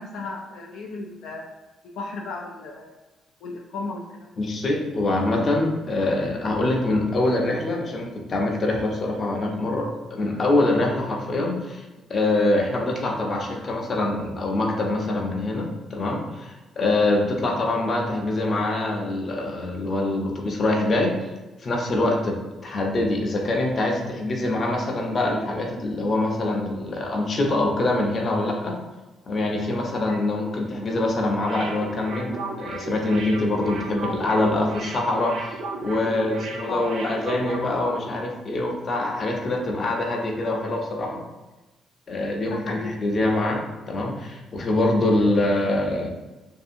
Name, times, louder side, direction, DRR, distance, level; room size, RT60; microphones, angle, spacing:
voice 1, 0.0-1.4 2.0-2.9 3.4-4.3 30.1-30.2 36.7-37.0 42.4-42.9, left 3 dB, 85° left, -1 dB, 0.3 m, -34 dB
voice 2, 4.4-11.8 12.1-21.1 21.6-28.8 29.3-41.2 42.1-43.6 43.9-46.1, left 2 dB, 45° left, 1 dB, 0.6 m, -24 dB
sound 1, 31.4-38.0 38.3-38.4, right 2 dB, 80° right, 0.4 m, -35 dB
2.6 x 2.4 x 2.6 m, 1.1 s
cardioid pair, 90°, 0 cm